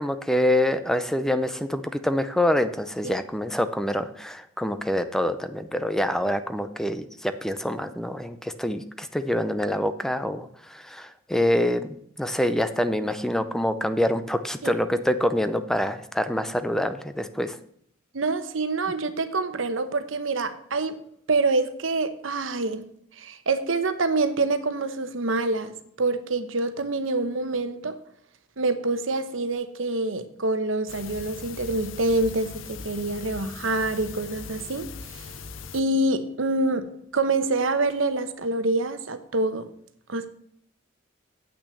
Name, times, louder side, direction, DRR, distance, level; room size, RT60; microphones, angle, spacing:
voice 1, 0.0-17.6, left 1 dB, 5° left, 10 dB, 0.5 m, -26 dB
voice 2, 18.1-21.0 21.3-22.8 23.2-25.7 26.0-27.9 28.6-35.3 35.7-39.7 40.1-40.3, right 2 dB, 80° right, 10 dB, 1.0 m, -26 dB
sound 1, 30.9-35.8, left 5 dB, 75° left, 0.6 m, -40 dB
8.4 x 6.1 x 6.9 m, 0.68 s
head